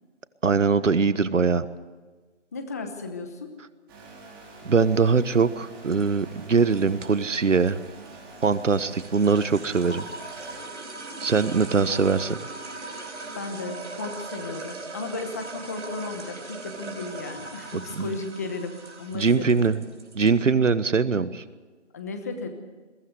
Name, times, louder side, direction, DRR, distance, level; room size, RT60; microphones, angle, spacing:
voice 1, 0.4-1.7 4.6-7.8 8.4-10.1 11.2-12.4 17.7-18.2 19.1-19.8 20.1-21.4, right 5 dB, 90° right, 14 dB, 1.4 m, -22 dB
voice 2, 2.5-3.5 11.8-12.1 13.3-19.8 21.9-22.5, left 3 dB, 15° left, 6 dB, 1.0 m, -35 dB
sound 1, 3.9-10.6, right 3 dB, 20° right, 4.5 m, -46 dB
sound 2, 5.8-20.3, right 3 dB, 70° right, 5.3 m, -40 dB
21.5 x 16.5 x 8.1 m, 1.3 s
hypercardioid pair, 170°, 36 cm